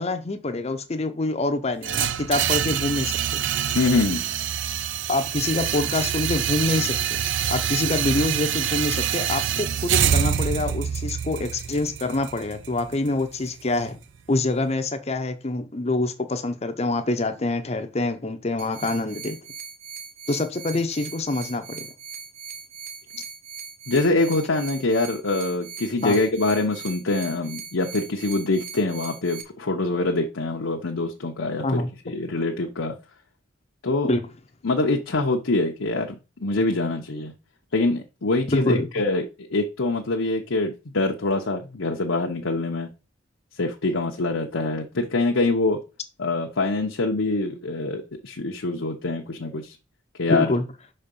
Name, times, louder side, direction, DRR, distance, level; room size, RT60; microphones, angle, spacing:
voice 1, 0.0-3.4 5.1-7.2 7.5-14.0 14.3-19.4 20.3-21.9 26.0-26.2 31.6-31.9 34.1-34.2 38.5-38.9 50.3-50.6, left 2 dB, 30° left, 7 dB, 0.7 m, -26 dB
sound 1, 1.8-13.9, right 9 dB, 65° right, 0.5 m, -26 dB
voice 2, 3.7-4.3 23.9-32.9 33.8-34.1 34.6-36.1 36.4-37.3 37.7-42.9 43.6-45.8 46.2-49.8 50.2-50.5, left 2 dB, 80° left, 1 dB, 0.9 m, -24 dB
sound 2, 18.6-29.4, right 6 dB, 45° right, 0.9 m, -40 dB
5.8 x 4.3 x 5.3 m, 0.31 s
head